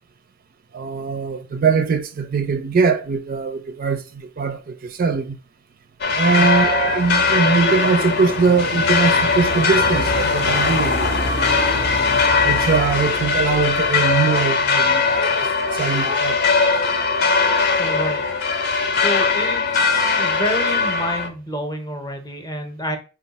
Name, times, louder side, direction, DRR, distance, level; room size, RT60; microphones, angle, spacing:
voice 1, 0.7-5.4 6.1-11.3 12.4-16.5, right 5 dB, 45° right, 0.4 m, -21 dB
sound 1, 6.0-21.3, left 4 dB, 55° left, 0.7 m, -20 dB
voice 2, 17.8-18.2 18.9-23.0, equal, 20° left, 0.7 m, -29 dB
4.3 x 2.3 x 4.0 m
head